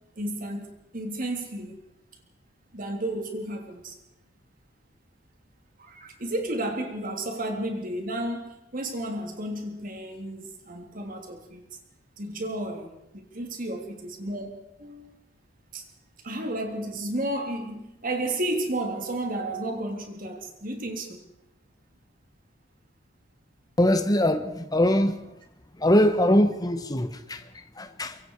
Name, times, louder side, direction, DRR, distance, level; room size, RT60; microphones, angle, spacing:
voice 1, 0.0-1.8 2.7-3.9 5.8-11.6 12.2-15.1 15.7-15.8 16.2-21.2, right 1 dB, 45° right, 3.5 m, -32 dB
voice 2, 23.8-25.2 25.8-28.2, left 1 dB, 20° left, 1.5 m, -22 dB
25.0 x 22.5 x 4.9 m
head